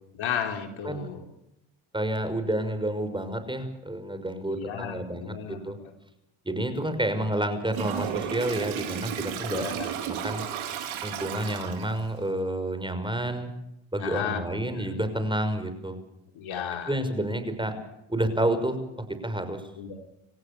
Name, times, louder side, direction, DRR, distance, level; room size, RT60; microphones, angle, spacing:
voice 1, 0.1-1.2 4.5-5.6 6.8-7.2 9.4-9.9 14.0-14.9 16.3-17.0 19.8-20.0, left 8 dB, 75° left, 4 dB, 4.3 m, -34 dB
voice 2, 1.9-5.8 6.4-9.6 10.1-10.4 11.0-13.5 13.9-16.0 16.8-17.7 18.1-18.8 19.2-19.6, right 1 dB, 10° right, 9 dB, 5.8 m, -29 dB
Toilet flush, 7.7-12.1, right 9 dB, 90° right, 4.4 m, -33 dB
28.5 x 15.5 x 7.1 m, 0.87 s
cardioid pair, 75°, 47 cm